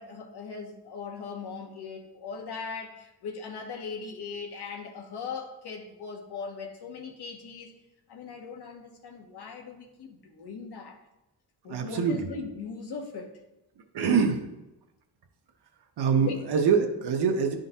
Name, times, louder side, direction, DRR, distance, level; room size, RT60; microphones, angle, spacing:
voice 1, 0.0-7.7 8.1-11.0 11.6-13.3 16.2-16.4, left 5 dB, 90° left, 3 dB, 1.0 m, -39 dB
voice 2, 11.7-12.2 13.9-14.4 16.0-17.5, right 6 dB, 85° right, 3 dB, 0.7 m, -24 dB
10.5 x 3.7 x 2.7 m, 0.96 s
wide cardioid pair, 130°, 38 cm